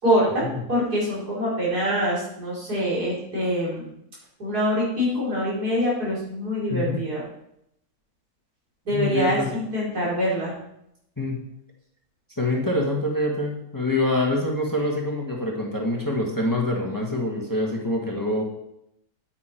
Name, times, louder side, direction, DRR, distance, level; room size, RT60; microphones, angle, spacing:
voice 1, 0.0-3.8 4.4-7.2 8.8-10.5, equal, 80° right, -6 dB, 5.2 m, -24 dB
voice 2, 6.7-7.0 8.9-9.5 11.2-11.3 12.4-18.4, left 1 dB, 15° left, -1 dB, 1.7 m, -25 dB
9.4 x 9.4 x 4.6 m, 0.78 s
omnidirectional pair, 1.6 m